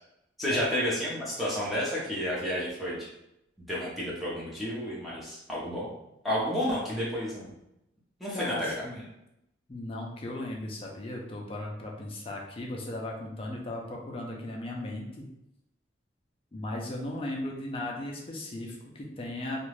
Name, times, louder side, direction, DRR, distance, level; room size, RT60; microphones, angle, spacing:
voice 1, 0.4-3.0 3.7-5.9 6.2-7.5 8.2-9.1, equal, ahead, -8 dB, 0.7 m, -31 dB
voice 2, 8.3-9.0 9.7-15.3 16.5-19.7, left 1 dB, 30° left, 0 dB, 0.4 m, -37 dB
2.4 x 2.3 x 3.2 m, 0.84 s
head